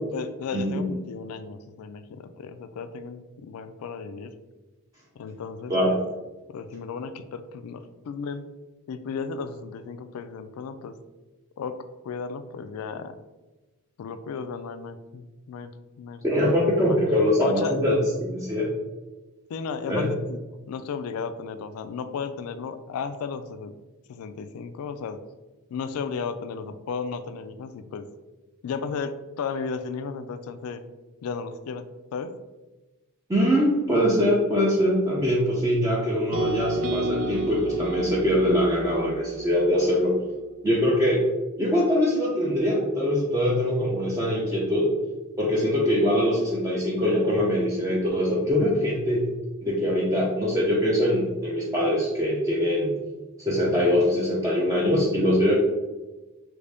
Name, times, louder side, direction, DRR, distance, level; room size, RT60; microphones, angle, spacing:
voice 1, 0.1-4.3 5.2-6.0 6.5-8.5 8.9-11.0 11.6-11.8 12.0-13.2 14.0-16.4 16.8-17.0 17.4-17.8 19.5-20.4 20.7-23.7 24.1-25.2 25.7-28.1 28.6-30.8 31.2-32.3, left 5 dB, 75° left, 12 dB, 0.3 m, -34 dB
voice 2, 16.2-18.7 19.9-20.0 33.3-40.1 40.6-41.2 41.6-44.9 45.4-49.2 49.6-53.0 53.4-55.5, equal, 15° right, -5 dB, 0.4 m, -23 dB
sound 1, 36.3-40.5, right 3 dB, 70° right, 0.5 m, -31 dB
3.1 x 2.6 x 3.4 m, 1.1 s
head